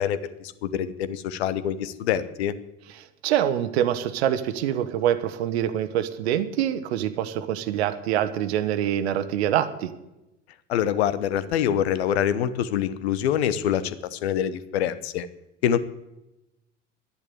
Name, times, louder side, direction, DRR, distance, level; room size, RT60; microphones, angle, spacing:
voice 1, 0.0-2.5 10.7-15.3 15.6-15.8, left 9 dB, 60° left, 15 dB, 0.9 m, -25 dB
voice 2, 3.0-9.9, right 10 dB, 60° right, 12 dB, 1.2 m, -25 dB
11.5 x 10.5 x 8.4 m, 0.94 s
figure-of-eight pair, 70°, 36 cm